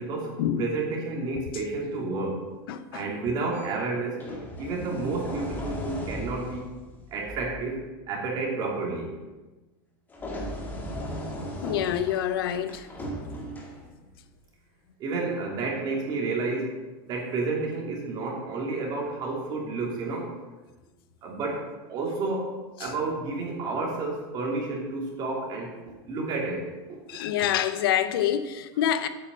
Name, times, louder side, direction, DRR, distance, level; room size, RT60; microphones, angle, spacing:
voice 1, 0.0-2.5 2.9-6.7 7.1-9.1 15.0-20.3 21.2-27.2, right 3 dB, 35° right, 3.0 m, -31 dB
voice 2, 2.7-3.0 11.6-12.9 22.8-22.9 27.1-29.1, left 10 dB, 80° left, 0.9 m, -26 dB
sound 1, 3.5-3.7 4.2-7.7 10.1-14.1 15.1-15.3, equal, 15° left, 1.9 m, -37 dB
8.9 x 7.0 x 7.6 m
supercardioid pair, 155°, 12 cm